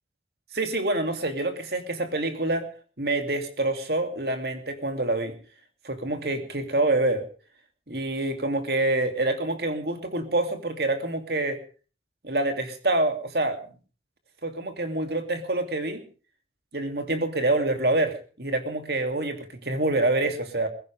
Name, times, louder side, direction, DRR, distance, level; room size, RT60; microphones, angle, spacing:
voice 1, 0.5-2.7 3.0-5.3 5.8-7.2 7.9-11.6 12.2-13.6 14.4-16.0 16.7-20.7, right 2 dB, 60° right, 6 dB, 2.7 m, -26 dB
21.5 x 15.5 x 3.5 m, 0.38 s
head